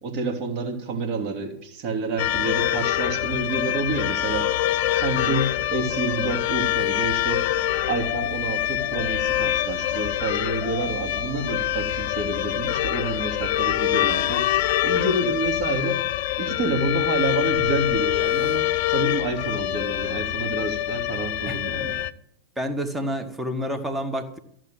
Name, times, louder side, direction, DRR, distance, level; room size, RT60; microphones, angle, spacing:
voice 1, 0.0-4.5 5.0-7.4 7.9-14.5 14.8-16.0 16.4-22.0, right 3 dB, 40° right, 5 dB, 2.5 m, -28 dB
sound 1, 2.2-22.1, left 13 dB, 50° left, 0.6 m, -25 dB
voice 2, 22.6-24.4, equal, 10° right, 8 dB, 1.6 m, -29 dB
14.5 x 7.5 x 8.8 m, 0.70 s
figure-of-eight pair, 90°, 0 cm